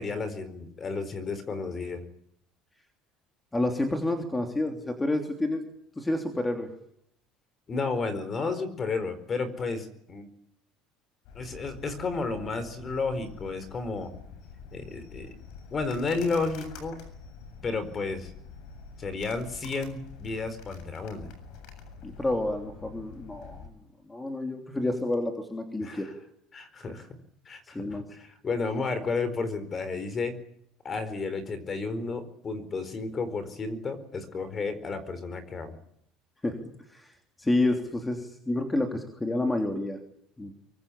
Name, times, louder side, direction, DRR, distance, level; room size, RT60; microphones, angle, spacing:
voice 1, 0.0-2.0 7.7-10.3 11.3-14.1 14.7-15.3 15.7-17.0 17.6-18.3 19.0-21.3 25.8-26.1 26.5-27.2 27.5-30.4 30.8-35.8, left 4 dB, 25° left, 13 dB, 4.4 m, -32 dB
voice 2, 3.5-5.6 6.0-6.7 22.0-23.7 24.1-26.1 27.7-28.0 36.4-36.6 36.9-37.1 37.4-40.0 40.4-40.5, left 2 dB, 10° left, 4 dB, 3.3 m, -29 dB
sound 1, 11.3-23.7, left 5 dB, 65° left, 7.7 m, -47 dB
24.5 x 24.0 x 8.5 m, 0.72 s
cardioid pair, 150°, 0 cm